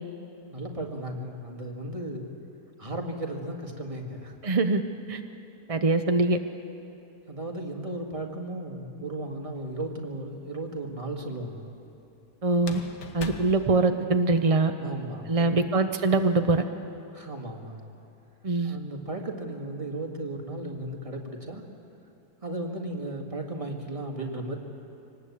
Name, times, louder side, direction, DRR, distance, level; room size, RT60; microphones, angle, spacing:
voice 1, 0.5-2.3 2.8-4.4 7.3-11.7 14.8-15.8 17.1-17.8 18.6-21.6 22.4-24.6, right 1 dB, 20° right, 1 dB, 1.9 m, -35 dB
voice 2, 4.4-4.8 5.1-5.2 5.7-6.4 12.4-12.8 13.1-14.7 15.3-16.6 18.4-18.8, right 3 dB, 65° right, 7 dB, 0.3 m, -23 dB
sound 1, 9.4-10.1 12.5-14.5, left 6 dB, 80° left, 1.9 m, -42 dB
24.5 x 19.0 x 8.4 m, 2.7 s
omnidirectional pair, 1.8 m